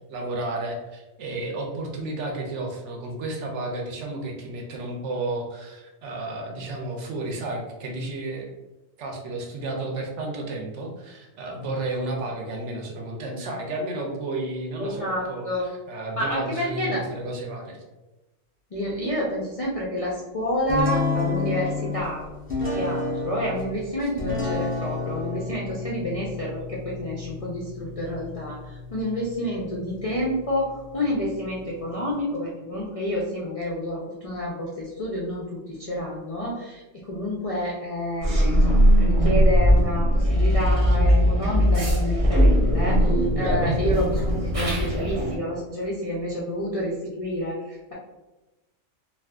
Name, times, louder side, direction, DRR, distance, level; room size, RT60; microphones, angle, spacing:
voice 1, 0.1-8.5 9.0-15.5 15.9-17.8 43.4-43.7, right 2 dB, 70° right, 1 dB, 0.9 m, -32 dB
voice 2, 14.8-15.7 16.2-17.0 18.7-22.2 22.7-47.9, left 1 dB, 55° left, -4 dB, 0.4 m, -29 dB
sound 1, 20.7-32.2, left 3 dB, 10° left, 0.8 m, -31 dB
sound 2, 38.2-45.4, equal, 30° right, 0.8 m, -19 dB
2.4 x 2.4 x 3.4 m, 1.1 s
omnidirectional pair, 1.3 m